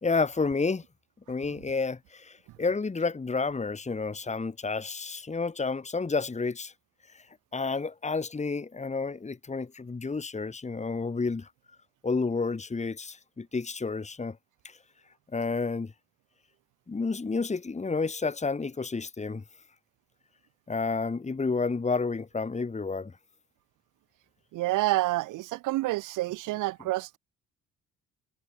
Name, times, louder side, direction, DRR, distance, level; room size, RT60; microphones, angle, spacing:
voice 1, 0.0-0.8 1.3-6.7 7.5-11.5 12.0-14.4 14.6-14.8 15.3-15.9 16.9-19.4 20.7-23.1, left 4 dB, 25° left, 2.2 m, -30 dB
voice 2, 24.5-27.2, right 18 dB, 90° right, 0.9 m, -28 dB
cardioid pair, 90°, 30 cm